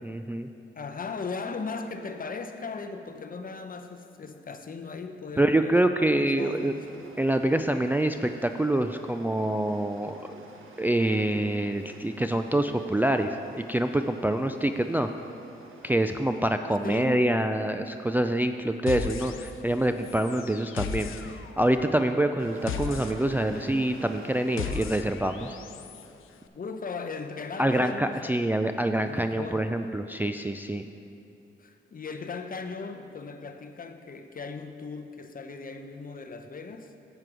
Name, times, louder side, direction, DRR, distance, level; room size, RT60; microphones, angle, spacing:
voice 1, 0.0-0.5 5.4-6.7 7.2-10.4 10.8-15.1 15.8-25.6 27.6-30.8, right 1 dB, 10° right, 7 dB, 0.3 m, -26 dB
voice 2, 0.7-7.1 16.8-17.4 26.5-28.3 29.0-29.7 31.6-36.9, left 4 dB, 45° left, 7 dB, 0.7 m, -38 dB
sound 1, 6.4-16.4 22.4-24.8, right 2 dB, 75° right, 1.0 m, -49 dB
sound 2, 18.9-19.8 20.0-26.1, left 7 dB, 75° left, 0.5 m, -37 dB
7.6 x 7.5 x 4.7 m, 2.6 s
cardioid pair, 65°, 21 cm